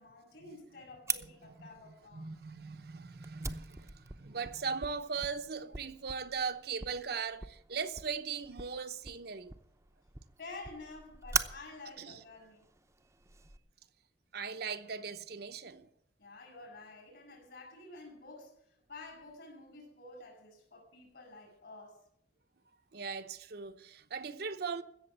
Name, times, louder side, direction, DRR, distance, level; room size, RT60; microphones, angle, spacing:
voice 1, 0.0-2.3 10.4-12.6 16.2-22.0, left 3 dB, 65° left, 6.6 m, -50 dB
Fire, 1.1-13.6, right 4 dB, 15° right, 0.7 m, -42 dB
voice 2, 1.8-9.5 12.0-12.2 14.3-15.9 22.9-24.8, right 5 dB, 60° right, 0.9 m, -39 dB
16.0 x 7.1 x 9.1 m
head